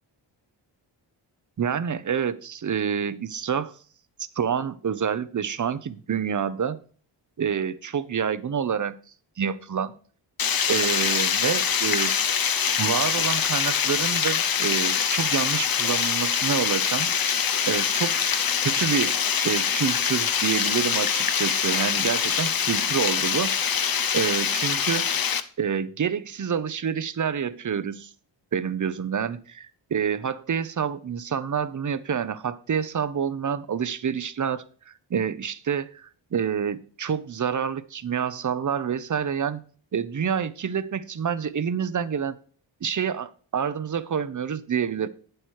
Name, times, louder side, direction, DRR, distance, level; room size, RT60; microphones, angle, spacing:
voice 1, 1.6-3.7 4.3-6.8 7.4-8.9 9.4-10.0 10.7-12.1 12.8-18.2 18.6-25.1 25.6-28.1 28.5-39.6 39.9-42.4 42.8-45.1, right 7 dB, 40° right, 0.8 m, -28 dB
Water, 10.4-25.4, left 7 dB, 45° left, 0.9 m, -24 dB
8.8 x 7.9 x 4.7 m
cardioid pair, 95°, 47 cm